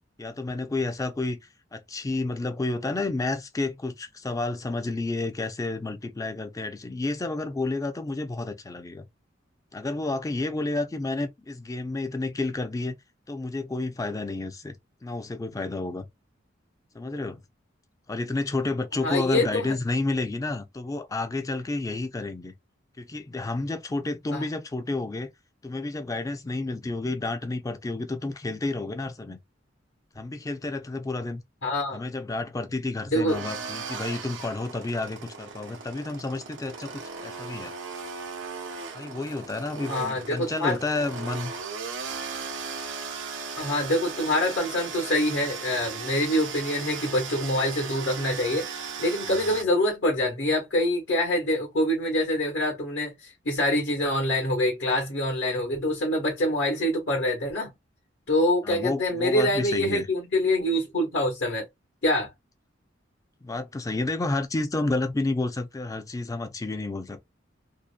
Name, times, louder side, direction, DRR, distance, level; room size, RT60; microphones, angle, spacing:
voice 1, 0.2-1.4 1.7-9.1 9.7-12.9 13.3-14.8 15.0-16.0 16.9-17.4 18.1-22.5 23.0-25.3 25.6-29.4 30.1-31.4 31.9-37.7 38.9-41.5 49.2-49.4 58.6-60.1 63.4-67.2, left 2 dB, 20° left, 0.4 m, -30 dB
voice 2, 19.0-19.7 24.3-24.4 31.6-32.0 33.0-33.4 39.9-40.8 43.6-57.7 58.3-61.6 62.0-62.3, left 1 dB, 65° left, 1.1 m, -25 dB
sound 1, 33.3-49.6, right 5 dB, 90° right, 0.7 m, -37 dB
2.7 x 2.1 x 2.4 m
head